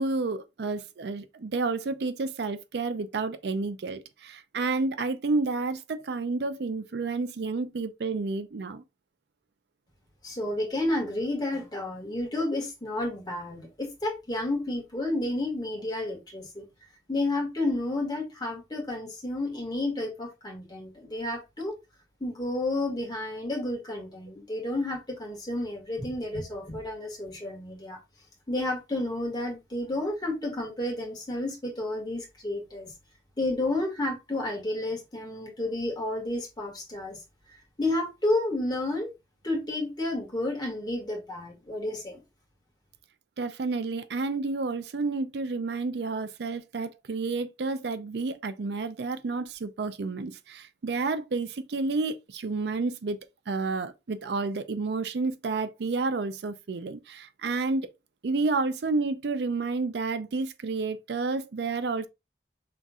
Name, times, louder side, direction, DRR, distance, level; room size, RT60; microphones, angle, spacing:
voice 1, 0.0-8.8 43.4-53.2 53.5-57.9 58.2-62.1, right 3 dB, 65° right, 0.5 m, -30 dB
voice 2, 10.2-16.7 17.1-21.8 22.2-28.0 28.5-32.9 33.4-37.2 37.8-39.1 39.4-42.2, left 2 dB, 25° left, 1.8 m, -31 dB
5.7 x 3.6 x 2.3 m
head